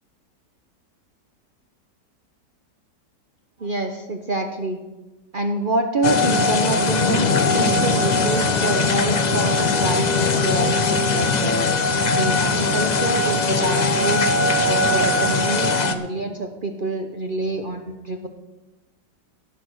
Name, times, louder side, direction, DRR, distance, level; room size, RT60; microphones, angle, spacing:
voice 1, 3.6-4.8 5.3-11.7 12.2-14.3 14.7-18.3, right 2 dB, 40° right, 4 dB, 0.8 m, -26 dB
sound 1, 6.0-15.9, left 3 dB, 85° left, 0.3 m, -20 dB
17.5 x 6.0 x 6.5 m, 1.1 s
omnidirectional pair, 1.9 m